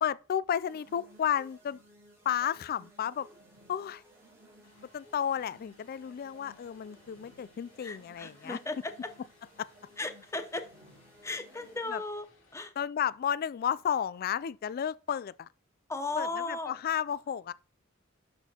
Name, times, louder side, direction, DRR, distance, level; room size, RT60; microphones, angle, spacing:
voice 1, 0.0-1.8 2.2-3.3 3.7-4.0 4.9-8.6 9.6-9.7 11.9-12.0 12.8-15.5 16.2-17.5, left 9 dB, 50° left, 0.3 m, -32 dB
sound 1, 0.6-12.2, equal, 15° right, 3.7 m, -58 dB
Vehicle, 4.6-12.6, left 2 dB, 70° left, 2.3 m, -64 dB
voice 2, 7.8-9.1 10.0-10.7 11.2-12.3 12.5-12.7 15.9-16.8, left 2 dB, 15° left, 0.7 m, -36 dB
11.5 x 4.4 x 2.8 m
head